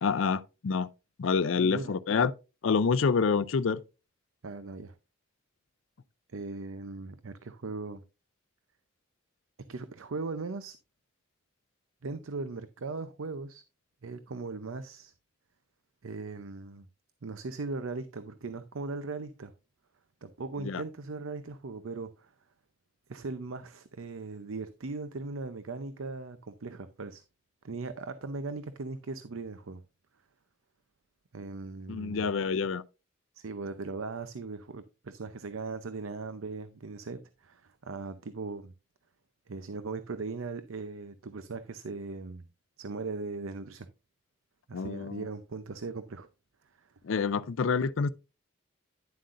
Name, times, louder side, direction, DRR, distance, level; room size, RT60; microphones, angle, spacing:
voice 1, 0.0-0.9 1.2-2.3 2.6-3.8 20.6-20.8 31.9-32.8 44.7-45.2 47.0-48.1, left 5 dB, 75° left, 0.4 m, -27 dB
voice 2, 1.6-1.9 4.4-4.9 6.3-8.0 9.7-10.8 12.0-13.6 14.0-15.1 16.0-16.9 17.2-19.5 20.2-22.3 23.1-27.2 27.6-29.8 31.3-32.3 33.3-38.7 39.5-42.5 42.8-43.9 44.7-46.3 46.8-46.9, right 3 dB, 85° right, 0.6 m, -39 dB
10.5 x 7.6 x 2.5 m
head